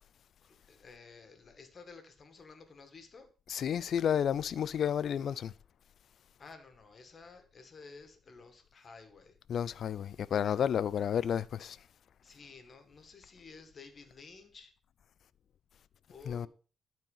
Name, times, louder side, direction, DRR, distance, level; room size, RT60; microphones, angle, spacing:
voice 1, 0.4-3.3 4.7-5.0 6.4-9.4 12.2-14.7 16.1-16.5, left 4 dB, 40° left, 1.9 m, -53 dB
voice 2, 3.5-5.5 9.5-11.8 16.3-16.5, left 8 dB, 60° left, 0.5 m, -31 dB
12.0 x 4.5 x 5.6 m
cardioid pair, 90°, 0 cm